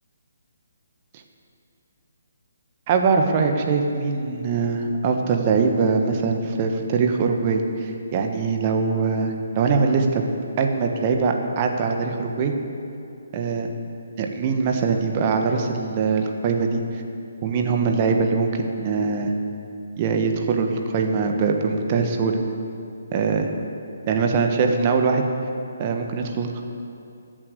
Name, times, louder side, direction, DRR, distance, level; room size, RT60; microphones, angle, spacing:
voice 1, 2.9-10.2 10.6-12.5 13.3-13.7 14.2-16.8 17.4-19.3 20.0-22.4 23.1-23.5 24.1-25.2 25.8-26.6, right 5 dB, 30° right, 4 dB, 1.3 m, -22 dB
14.0 x 7.6 x 8.2 m, 2.6 s
figure-of-eight pair, 140°, 0 cm